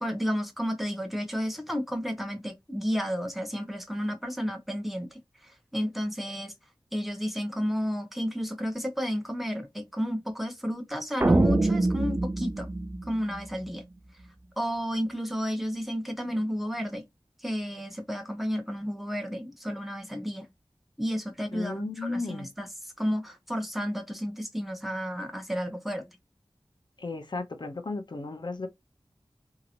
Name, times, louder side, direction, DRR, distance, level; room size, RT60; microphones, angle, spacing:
voice 1, 0.0-6.5 6.9-12.7 13.0-13.8 14.6-17.0 17.4-20.5 21.0-26.1, equal, ahead, 0.9 m, -32 dB
sound 1, 11.2-13.7, right 2 dB, 25° right, 0.4 m, -25 dB
voice 2, 21.5-22.5 27.0-28.7, left 3 dB, 55° left, 0.7 m, -34 dB
2.9 x 2.8 x 2.5 m
wide cardioid pair, 70°, 9 cm